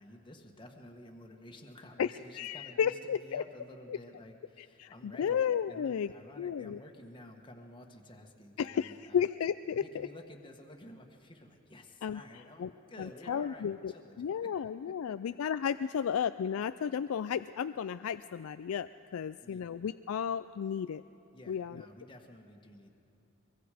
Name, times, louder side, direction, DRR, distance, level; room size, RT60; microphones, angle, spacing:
voice 1, 0.0-5.4 5.7-9.2 9.7-14.5 15.1-15.2 15.9-16.0 19.2-19.6 21.3-22.9, left 1 dB, 25° left, 2 dB, 1.4 m, -52 dB
voice 2, 2.0-3.4 4.8-6.1 6.4-6.8 8.6-10.1 12.0-12.2 12.6-12.7 13.0-13.9 14.2-21.0 21.5-21.8, left 8 dB, 80° left, 13 dB, 0.4 m, -33 dB
23.5 x 22.5 x 5.0 m, 3.0 s
head